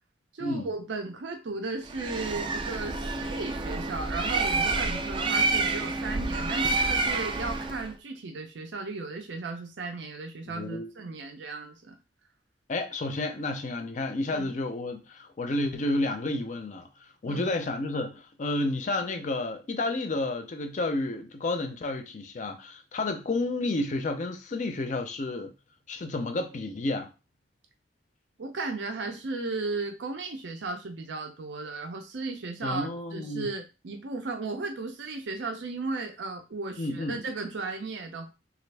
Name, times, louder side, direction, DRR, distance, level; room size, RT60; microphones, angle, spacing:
voice 1, 0.3-12.0 14.3-14.5 17.2-17.5 28.4-38.3, right 3 dB, 75° right, 0.6 m, -35 dB
Bird, 1.9-7.9, right 3 dB, 25° right, 0.3 m, -28 dB
voice 2, 10.5-10.9 12.7-25.5 25.9-27.1 32.6-33.5 36.8-37.2, left 2 dB, 40° left, 0.4 m, -31 dB
3.3 x 2.5 x 3.2 m
head